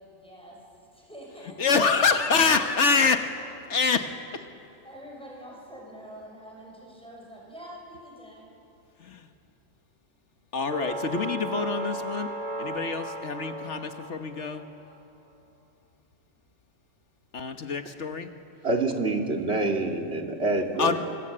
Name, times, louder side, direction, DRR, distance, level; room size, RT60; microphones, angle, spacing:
voice 1, 0.0-3.3 4.8-8.5 20.7-21.0, equal, 5° left, -2 dB, 6.4 m, -46 dB
voice 2, 1.6-3.3 3.7-4.1 10.5-12.3 12.6-14.6 17.3-18.3 20.8-21.0, left 5 dB, 70° left, 7 dB, 1.5 m, -25 dB
sound 1, 10.7-14.8, right 1 dB, 35° right, 2.2 m, -35 dB
voice 3, 18.6-21.0, right 2 dB, 60° right, 2 dB, 2.7 m, -26 dB
26.5 x 24.0 x 8.7 m, 2.7 s
omnidirectional pair, 1.2 m